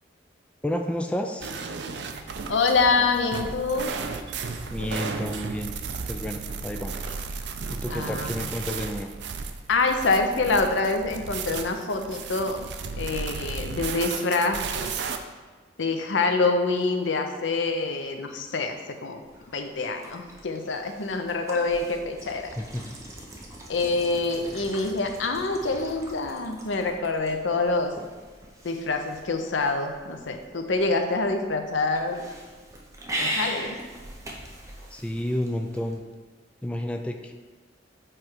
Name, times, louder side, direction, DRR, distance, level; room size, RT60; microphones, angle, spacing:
voice 1, 0.6-1.5 4.7-5.7 6.1-7.2 7.7-9.1 22.6-23.0 34.9-36.0 36.6-37.3, left 1 dB, 5° left, 4 dB, 0.3 m, -31 dB
sound 1, 1.4-15.2, right 4 dB, 65° right, 0.5 m, -34 dB
voice 2, 2.5-3.9 7.9-8.4 9.7-12.6 13.0-14.6 15.8-19.2 19.5-22.5 23.7-27.9 28.6-32.3 33.2-33.8, left 3 dB, 90° left, 6 dB, 0.6 m, -26 dB
sound 2, 19.2-36.0, right 1 dB, 15° right, 0.7 m, -40 dB
7.7 x 3.2 x 4.5 m, 1.4 s
head